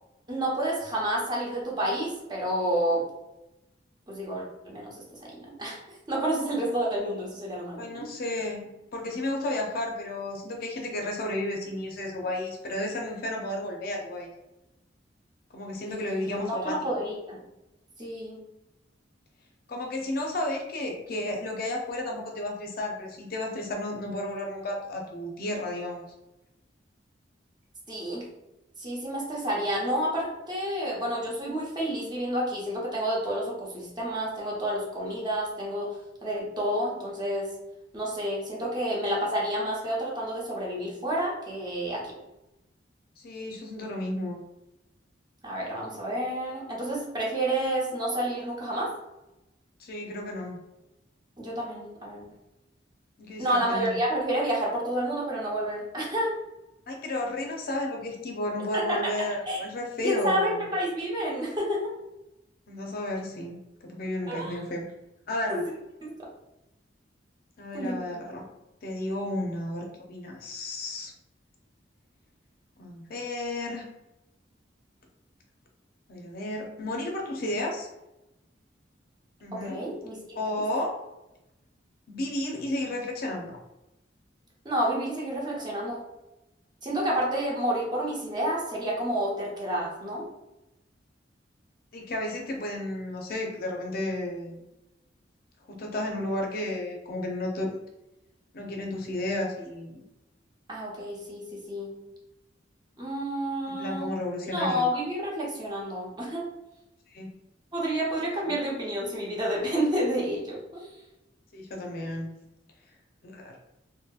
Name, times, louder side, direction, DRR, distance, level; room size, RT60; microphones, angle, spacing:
voice 1, 0.3-3.0 4.1-5.0 5.2-5.8 6.1-8.1 15.9-17.4 18.0-18.4 27.9-28.2 28.8-35.9 36.2-37.5 37.9-42.1 45.4-48.9 51.4-52.2 53.4-56.3 58.7-59.1 59.5-59.6 60.0-61.8 64.3-64.6 65.5-65.6 66.0-66.1 67.7-68.2 79.5-80.4 84.6-86.0 86.8-90.3 100.7-101.9 103.0-104.1 104.5-106.4 107.7-110.9, right 1 dB, 25° right, -4 dB, 0.8 m, -29 dB
voice 2, 7.8-14.3 15.5-17.0 19.7-26.0 43.2-44.4 49.8-50.6 53.2-54.0 56.9-60.7 62.7-63.6 63.9-64.8 65.3-65.6 67.6-68.4 68.8-71.1 72.8-73.8 76.1-77.9 79.4-79.8 80.4-81.0 82.1-83.5 91.9-94.6 95.7-97.8 98.5-100.0 103.7-104.9 107.1-107.3 111.5-112.3 113.2-113.5, left 1 dB, 55° left, 1 dB, 0.5 m, -32 dB
2.8 x 2.6 x 2.3 m, 0.95 s
head